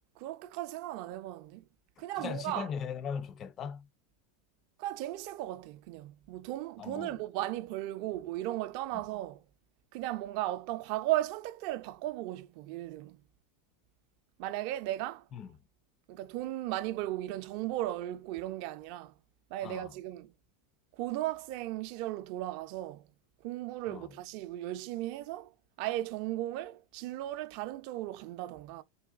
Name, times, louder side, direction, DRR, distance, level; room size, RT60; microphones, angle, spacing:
voice 1, 0.2-1.7 2.0-2.7 4.8-9.4 9.9-13.2 14.4-15.3 16.1-19.1 19.5-20.3 20.9-23.0 23.4-25.5 25.8-28.8, right 15 dB, 60° right, 0.4 m, -36 dB
voice 2, 2.2-3.9 6.8-7.1 15.3-15.5 19.6-19.9 23.9-24.1, left 7 dB, 35° left, 0.4 m, -38 dB
3.9 x 2.3 x 2.4 m
hypercardioid pair, 100°, 0 cm